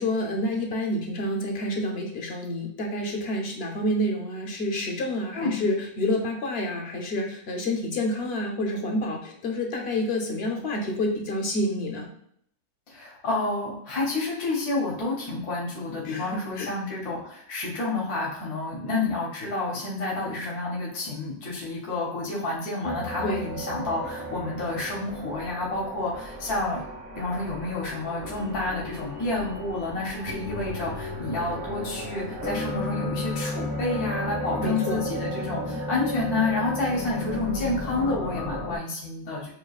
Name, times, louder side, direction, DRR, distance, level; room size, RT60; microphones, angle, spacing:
voice 1, 0.0-12.1 16.0-16.3 16.6-16.7 23.2-23.4 34.6-35.0, left 1 dB, 50° left, 2 dB, 0.8 m, -28 dB
voice 2, 12.9-26.8 27.1-39.5, left 2 dB, 85° left, -4 dB, 1.6 m, -29 dB
sound 1, 22.8-38.8, left 1 dB, 20° right, 1.0 m, -34 dB
6.6 x 2.3 x 2.4 m, 0.68 s
omnidirectional pair, 1.6 m